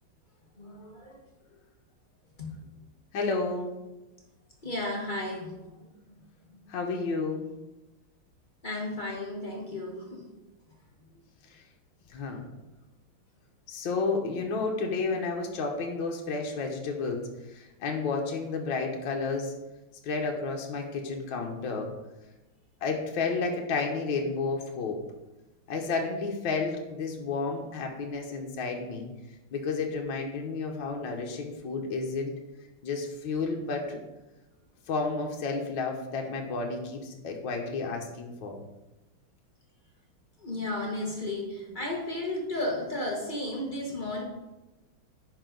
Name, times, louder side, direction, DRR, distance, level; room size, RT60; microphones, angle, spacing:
voice 1, 0.6-1.3 2.4-2.7 4.6-6.2 6.5-6.6 8.6-10.5 11.0-11.1 40.4-44.2, left 1 dB, 30° left, -1 dB, 1.1 m, -34 dB
voice 2, 3.1-3.8 6.7-7.4 11.5-11.6 12.1-12.4 13.7-19.5 20.0-21.9 22.8-25.0 25.7-29.1 29.5-32.3 32.8-34.0 34.9-38.6, left 4 dB, 65° left, 1 dB, 1.7 m, -31 dB
9.7 x 5.6 x 3.9 m, 1.0 s
omnidirectional pair, 2.3 m